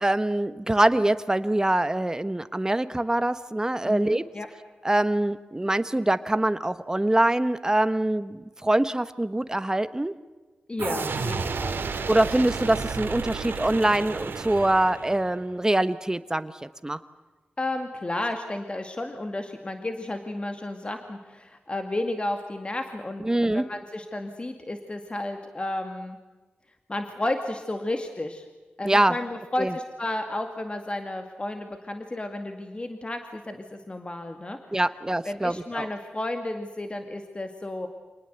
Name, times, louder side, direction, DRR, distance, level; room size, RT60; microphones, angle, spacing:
voice 1, 0.0-4.2 4.8-10.1 12.1-17.0 23.2-23.6 28.8-29.1 29.6-29.7 34.7-35.9, right 1 dB, 20° right, 13 dB, 1.2 m, -24 dB
voice 2, 3.8-4.5 10.7-11.8 17.6-26.2 26.9-28.5 28.8-34.8 35.2-37.9, left 1 dB, 30° left, 6 dB, 2.2 m, -32 dB
sound 1, 10.8-15.5, right 5 dB, 85° right, 2.4 m, -32 dB
26.5 x 19.5 x 8.1 m, 1.3 s
wide cardioid pair, 75°, 4 cm